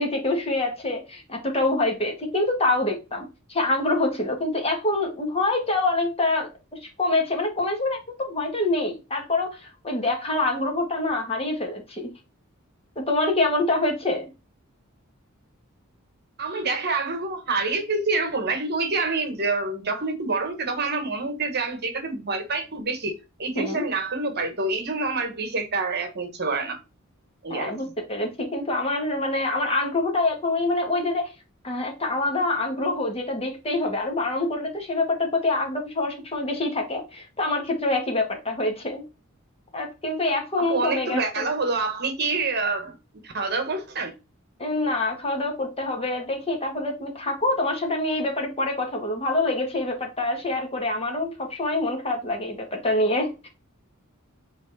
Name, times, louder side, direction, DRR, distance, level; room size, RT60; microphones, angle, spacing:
voice 1, 0.0-6.5 6.8-8.0 8.3-12.1 12.9-14.2 23.5-23.8 27.5-31.3 31.6-39.0 39.7-41.4 44.6-53.5, left 2 dB, 30° left, 1.7 m, -26 dB
voice 2, 16.4-26.8 27.4-27.7 40.6-42.9 43.2-44.1, right 3 dB, 50° right, 1.3 m, -27 dB
6.3 x 4.1 x 4.1 m
head